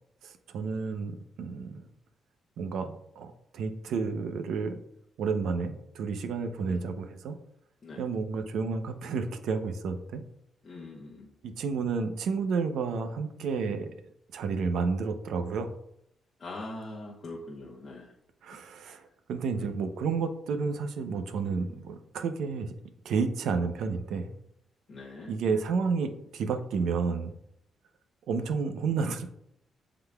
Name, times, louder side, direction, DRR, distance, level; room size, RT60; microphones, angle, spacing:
voice 1, 0.2-1.9 2.6-4.8 5.2-7.4 8.0-10.2 11.4-13.9 14.3-15.7 18.4-22.7 23.0-24.3 25.3-27.3 28.3-29.3, right 5 dB, 85° right, 7 dB, 0.7 m, -31 dB
voice 2, 10.6-11.3 16.4-18.1 18.8-19.0 19.5-19.8 21.4-21.7 24.9-25.3 29.0-29.2, left 2 dB, 40° left, -4 dB, 1.0 m, -43 dB
11.0 x 3.9 x 2.3 m, 0.75 s
cardioid pair, 115°, 0 cm